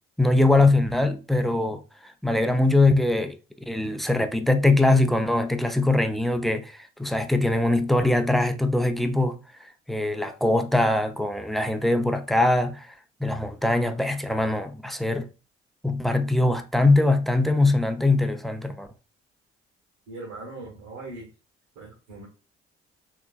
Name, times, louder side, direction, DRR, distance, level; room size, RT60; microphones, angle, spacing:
voice 1, 0.2-3.4 3.7-9.4 9.9-12.9 13.2-15.3 15.8-18.9, left 2 dB, ahead, 0.4 m, -22 dB
voice 2, 20.1-21.3 21.7-22.3, right 2 dB, 75° right, 1.3 m, -40 dB
3.2 x 3.0 x 2.2 m
figure-of-eight pair, 45°, 31 cm